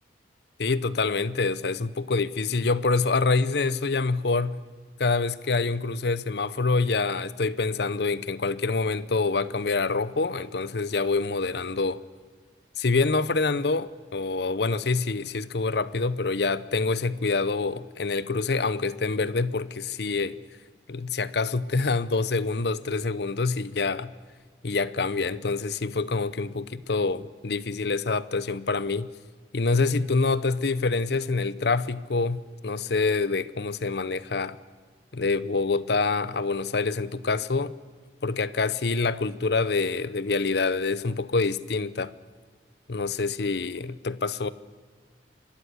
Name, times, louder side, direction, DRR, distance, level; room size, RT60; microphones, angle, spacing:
voice 1, 0.6-4.6 5.0-12.0 12.8-20.4 20.9-24.1 24.6-29.1 29.5-34.6 35.1-37.7 38.2-42.1 42.9-44.5, left 3 dB, 65° left, 0.7 m, -26 dB
24.5 x 13.0 x 9.9 m
head